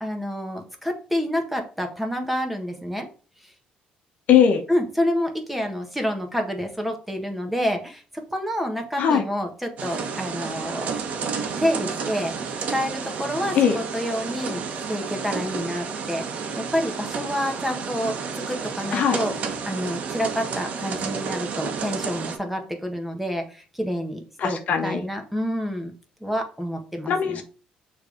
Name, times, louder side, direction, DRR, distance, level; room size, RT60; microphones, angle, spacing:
voice 1, 0.0-3.1 4.7-8.0 8.3-10.9 11.6-12.3 12.7-14.6 14.9-16.2 16.6-19.3 19.6-25.9 26.2-27.4, equal, 5° right, 4 dB, 1.5 m, -28 dB
voice 2, 4.3-4.6 9.0-9.2 13.5-13.8 18.9-19.2 24.4-25.0 27.1-27.4, left 8 dB, 60° left, 5 dB, 1.0 m, -20 dB
sound 1, 9.8-22.4, right 5 dB, 60° right, 1.2 m, -31 dB
6.5 x 3.3 x 5.1 m, 0.38 s
cardioid pair, 105°, 3 cm